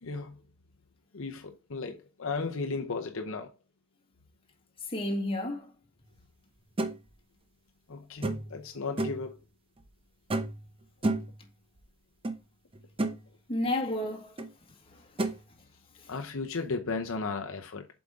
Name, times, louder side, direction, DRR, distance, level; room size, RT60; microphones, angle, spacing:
voice 1, 0.0-0.4 1.1-3.5 7.9-9.4 16.1-17.9, left 4 dB, 70° left, 0.8 m, -35 dB
voice 2, 4.8-5.7 13.5-14.4 14.9-15.0 16.0-16.1, left 1 dB, 25° left, 1.8 m, -31 dB
sound 1, 6.8-6.9 8.2-8.6 9.0-9.3 10.3-10.6 11.0-11.4 12.2-12.4 12.7-13.2 14.4-14.5 15.2-15.4, right 2 dB, 25° right, 0.8 m, -30 dB
7.6 x 5.0 x 3.7 m
head